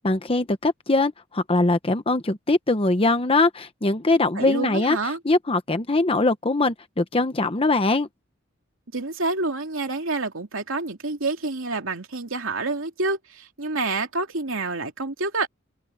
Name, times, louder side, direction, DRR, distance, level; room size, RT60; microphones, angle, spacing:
voice 1, 0.0-5.0 5.2-8.1, left 2 dB, 30° left, 1.0 m, -22 dB
voice 2, 4.4-5.2 8.9-15.5, right 3 dB, 75° right, 2.9 m, -28 dB
open air
head